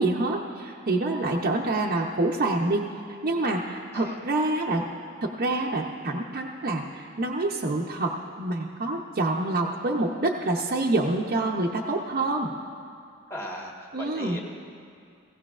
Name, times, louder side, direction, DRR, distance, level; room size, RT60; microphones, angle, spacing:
voice 1, 0.0-2.8 3.2-4.9 5.2-12.5 13.9-14.4, right 2 dB, 45° right, -2 dB, 0.7 m, -27 dB
voice 2, 13.3-14.4, equal, 15° left, -2 dB, 1.5 m, -37 dB
17.5 x 16.0 x 2.4 m, 2.3 s
head